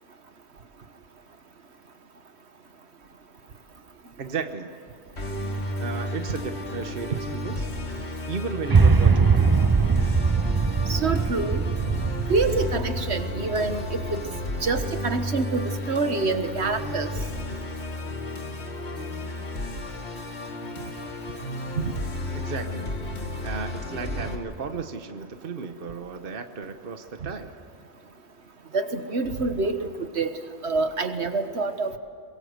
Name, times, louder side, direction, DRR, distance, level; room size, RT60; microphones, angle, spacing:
voice 1, 4.2-4.8 5.8-9.5 22.3-22.9 23.4-27.5, right 5 dB, 55° right, 7 dB, 1.3 m, -35 dB
Musical instrument, 5.2-24.4, left 1 dB, 70° left, 2.5 m, -33 dB
sound 1, 8.7-14.9, right 5 dB, 30° right, 0.5 m, -22 dB
voice 2, 10.9-11.7 12.3-14.2 14.6-17.1 21.8-21.9 28.7-29.9 30.1-30.4 30.6-32.0, right 3 dB, 70° right, 8 dB, 1.6 m, -26 dB
23.5 x 22.5 x 7.9 m, 2.2 s
omnidirectional pair, 1.2 m